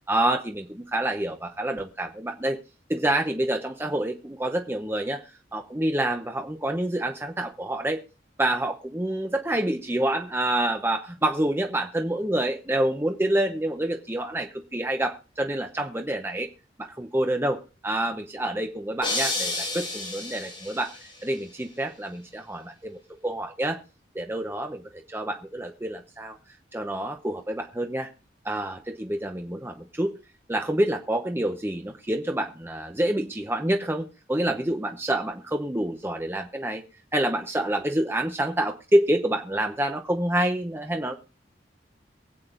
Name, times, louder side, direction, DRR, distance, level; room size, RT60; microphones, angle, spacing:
voice 1, 0.1-2.6 2.9-5.2 5.5-8.0 8.4-16.5 16.8-20.9 21.2-22.9 23.2-23.8 24.1-26.4 26.7-28.1 28.4-30.1 30.5-36.8 37.1-41.2, right 1 dB, 15° right, 4 dB, 0.8 m, -27 dB
sound 1, 19.0-21.1, left 2 dB, 30° left, 6.0 m, -30 dB
23.5 x 8.5 x 2.5 m, 0.35 s
head